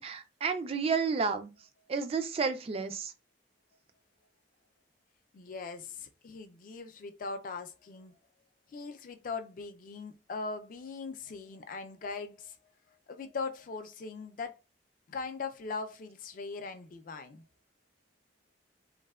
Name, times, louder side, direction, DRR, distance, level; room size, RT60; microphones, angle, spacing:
voice 1, 0.0-1.5 1.9-3.1, right 5 dB, 35° right, 0.3 m, -31 dB
voice 2, 5.3-8.1 8.7-12.6 13.1-14.6 15.1-17.4, left 4 dB, 45° left, 0.4 m, -40 dB
3.1 x 2.1 x 2.2 m
head